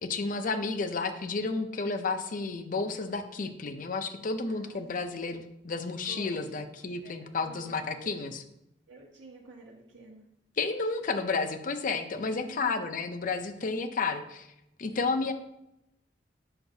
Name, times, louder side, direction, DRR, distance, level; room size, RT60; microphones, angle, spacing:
voice 1, 0.0-8.4 10.6-14.5 14.8-15.3, left 4 dB, 45° left, 8 dB, 0.5 m, -31 dB
voice 2, 4.5-4.8 6.0-6.7 7.0-8.1 8.9-10.3 12.3-12.9 15.0-15.2, right 2 dB, 85° right, -3 dB, 1.1 m, -50 dB
7.8 x 5.7 x 2.7 m, 0.85 s
head